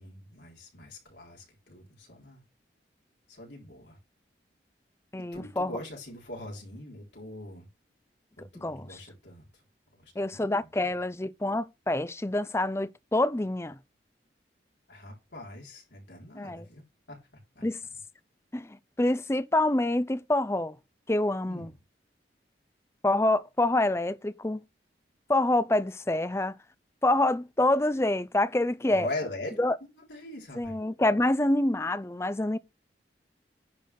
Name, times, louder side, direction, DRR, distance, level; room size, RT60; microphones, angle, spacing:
voice 1, 0.0-2.4 3.3-4.0 5.3-7.7 8.4-9.5 9.9-10.4 10.8-10.9 14.9-16.8 17.1-17.2 17.6-17.7 21.5-21.7 28.9-30.8, left 2 dB, 80° left, 3.8 m, -42 dB
voice 2, 5.1-5.8 8.4-9.0 10.2-13.8 16.4-16.7 17.6-17.8 18.5-20.8 21.1-21.7 23.0-24.6 25.3-26.6 27.0-29.1 29.6-29.7 30.6-32.6, left 1 dB, 15° left, 0.4 m, -27 dB
10.5 x 4.0 x 6.7 m
head